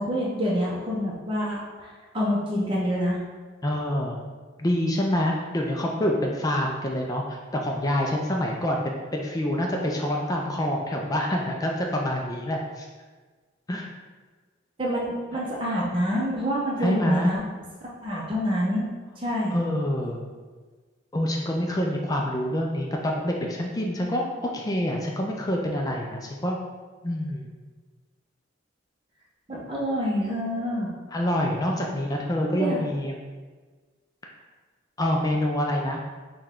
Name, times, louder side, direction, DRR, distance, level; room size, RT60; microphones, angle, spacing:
voice 1, 0.0-3.2 14.8-17.4 18.0-19.5 29.5-30.9 32.4-32.8, equal, 25° right, -6 dB, 0.6 m, -27 dB
voice 2, 3.6-4.2 4.6-12.9 13.7-13.9 16.8-17.4 19.5-20.2 21.1-26.6 27.0-27.5 31.1-33.1 34.2-34.3 35.0-36.0, left 1 dB, 20° left, 0 dB, 0.3 m, -26 dB
5.2 x 2.3 x 3.6 m, 1.4 s
head